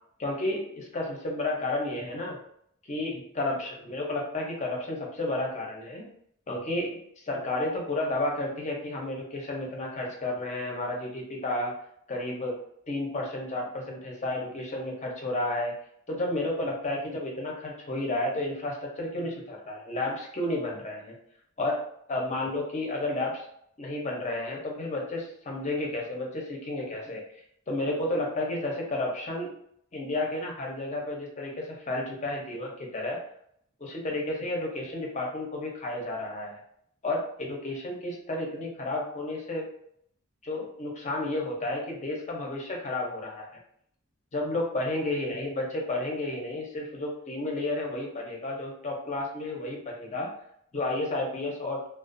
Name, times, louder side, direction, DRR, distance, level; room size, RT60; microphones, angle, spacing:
voice 1, 0.2-2.4 2.9-6.0 6.5-11.7 12.1-12.6 12.9-15.7 16.1-21.1 21.6-21.8 22.1-23.4 23.8-27.2 27.7-29.5 29.9-33.2 33.8-36.6 37.0-39.6 40.4-43.5 44.3-50.3 50.7-51.8, left 2 dB, 35° left, -1 dB, 0.7 m, -32 dB
2.4 x 2.3 x 2.5 m, 0.69 s
head